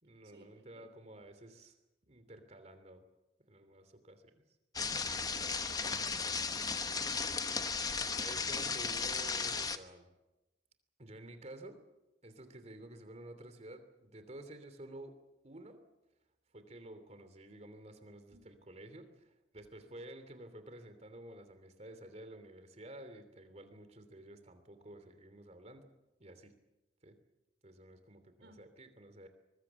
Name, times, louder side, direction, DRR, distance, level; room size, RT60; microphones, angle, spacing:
voice 1, 0.0-1.7 2.0-3.0 3.4-4.2 8.2-10.1 11.0-11.8 12.2-15.2 15.4-15.8 16.5-25.9 26.2-26.5 27.0-27.2 27.6-29.3, right 1 dB, 40° right, 9 dB, 3.0 m, -51 dB
sound 1, 4.7-9.8, left 4 dB, 20° left, 1.1 m, -35 dB
voice 2, 5.7-7.2 28.4-28.7, right 1 dB, 80° right, 8 dB, 4.4 m, -59 dB
24.0 x 21.0 x 7.2 m, 1.0 s
head